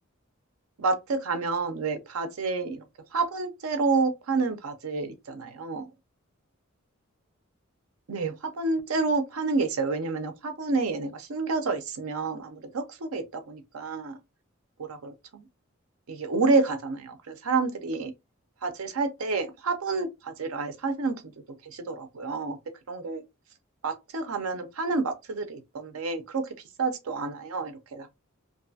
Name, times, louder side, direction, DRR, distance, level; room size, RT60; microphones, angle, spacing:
voice 1, 0.8-2.8 3.1-5.9 8.1-14.2 14.8-15.5 16.1-18.1 18.6-21.2 21.6-22.6 22.9-23.2 23.8-28.1, right 3 dB, 90° right, 0.6 m, -29 dB
2.6 x 2.3 x 2.6 m
head